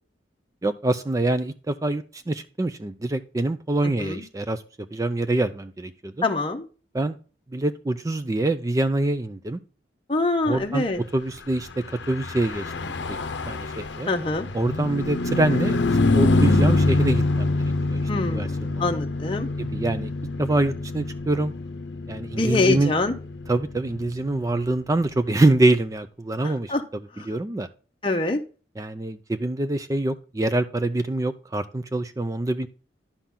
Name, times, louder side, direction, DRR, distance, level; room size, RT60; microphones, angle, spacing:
voice 1, 0.6-6.2 6.9-7.2 7.5-9.6 10.5-10.9 11.1-12.9 13.5-14.1 14.5-15.8 16.1-18.9 19.6-20.1 20.4-21.5 22.1-22.9 23.5-27.7 28.8-32.7, right 2 dB, 20° right, 10 dB, 0.4 m, -25 dB
voice 2, 3.8-4.2 6.2-6.7 10.1-11.0 14.1-14.5 18.1-19.5 22.3-23.1 26.4-26.8 27.2-27.3 28.0-28.4, left 2 dB, 30° left, 3 dB, 0.7 m, -25 dB
Car passing by / Truck, 11.9-25.6, left 2 dB, 70° left, 0.7 m, -26 dB
10.5 x 5.8 x 3.6 m, 0.37 s
head